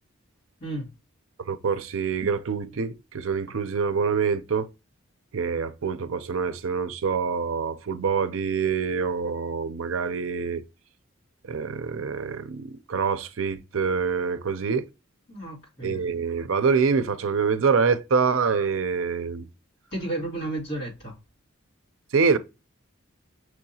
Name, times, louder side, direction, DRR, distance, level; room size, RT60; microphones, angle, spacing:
voice 1, 0.6-0.9 15.3-16.1 19.9-21.2, right 1 dB, 50° left, 2.1 m, -33 dB
voice 2, 1.5-4.7 5.3-10.6 11.5-14.9 15.8-19.5 22.1-22.4, right 5 dB, 70° right, 0.5 m, -25 dB
6.0 x 2.8 x 2.7 m
head